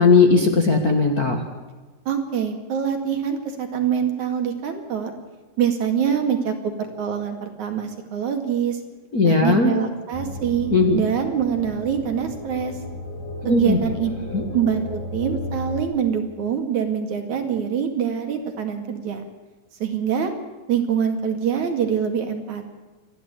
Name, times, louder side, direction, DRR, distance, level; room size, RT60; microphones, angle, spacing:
voice 1, 0.0-1.4 9.1-9.7 10.7-11.0 13.4-13.8 14.3-14.4, left 4 dB, 35° left, 2 dB, 1.7 m, -17 dB
voice 2, 2.1-5.1 5.6-8.8 9.2-12.7 13.5-14.1 14.4-19.2 19.8-20.3 20.7-22.7, right 8 dB, 60° right, 4 dB, 3.6 m, -24 dB
sound 1, 10.1-15.8, left 1 dB, 80° left, 5.3 m, -34 dB
28.0 x 11.5 x 8.4 m, 1.3 s
omnidirectional pair, 3.8 m